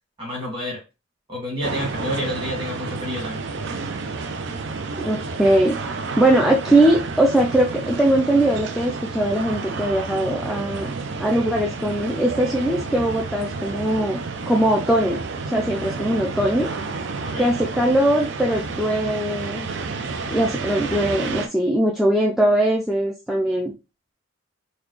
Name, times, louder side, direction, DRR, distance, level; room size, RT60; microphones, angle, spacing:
voice 1, 0.2-0.8 1.3-3.4 17.2-17.5, equal, 25° right, -3 dB, 1.9 m, -29 dB
sound 1, 1.6-21.5, right 4 dB, 60° right, 0.5 m, -30 dB
voice 2, 5.0-5.8 6.2-10.9 11.2-14.2 14.5-16.7 17.4-19.7 20.3-23.7, right 1 dB, ahead, -2 dB, 0.3 m, -20 dB
3.9 x 2.3 x 3.1 m, 0.27 s
head